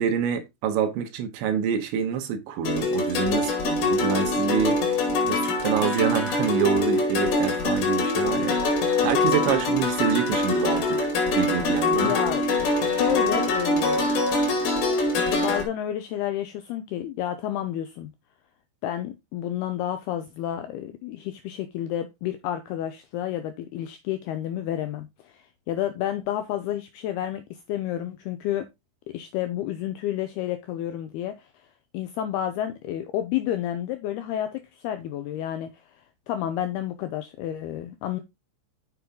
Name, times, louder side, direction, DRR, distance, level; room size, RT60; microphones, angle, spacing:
voice 1, 0.0-8.8 9.0-11.1 11.4-12.1, right 7 dB, 75° right, 3.4 m, -27 dB
sound 1, 2.6-15.6, left 2 dB, 60° left, 4.1 m, -24 dB
voice 2, 11.9-14.1 15.2-18.1 18.8-28.7 29.1-31.7 31.9-38.2, left 11 dB, 80° left, 2.3 m, -30 dB
7.6 x 7.0 x 3.7 m
omnidirectional pair, 5.4 m